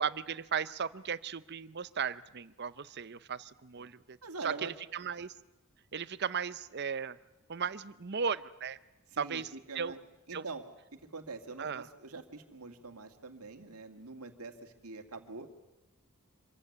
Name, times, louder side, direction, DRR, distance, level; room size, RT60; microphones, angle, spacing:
voice 1, 0.0-4.2 4.4-5.3 5.9-7.2 7.5-8.8 9.2-9.5 9.7-9.9 10.3-10.4 11.6-11.8, right 6 dB, 50° right, 16 dB, 0.7 m, -36 dB
voice 2, 4.2-4.7 9.1-10.0 10.3-10.7 10.9-15.5, right 3 dB, 85° right, 6 dB, 2.2 m, -44 dB
26.0 x 15.5 x 9.7 m, 1.1 s
head